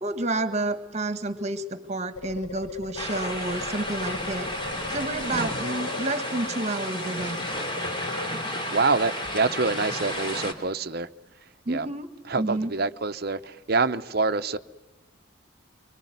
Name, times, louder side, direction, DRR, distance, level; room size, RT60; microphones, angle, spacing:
voice 1, 0.0-4.5 4.9-7.5 11.7-12.1 12.4-12.7, right 2 dB, 35° right, 1.6 m, -30 dB
sound 1, 2.2-8.3, left 4 dB, 90° left, 0.8 m, -39 dB
sound 2, 3.0-10.5, left 1 dB, 25° left, 3.1 m, -32 dB
voice 2, 8.7-11.1 11.7-11.9 12.3-14.6, right 3 dB, 50° right, 0.9 m, -26 dB
25.5 x 24.5 x 9.4 m
head